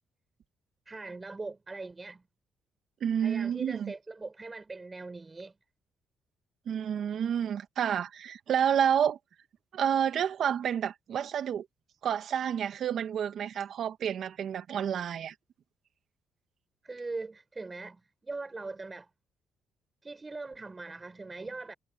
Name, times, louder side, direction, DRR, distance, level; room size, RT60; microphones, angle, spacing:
voice 1, 0.9-2.2 3.2-5.5 16.8-19.1 20.0-21.7, right 3 dB, 25° right, 7.4 m, -41 dB
voice 2, 3.0-3.9 6.7-9.2 9.7-11.7 12.0-15.3, right 8 dB, 65° right, 2.2 m, -29 dB
cardioid pair, 90°, 0 cm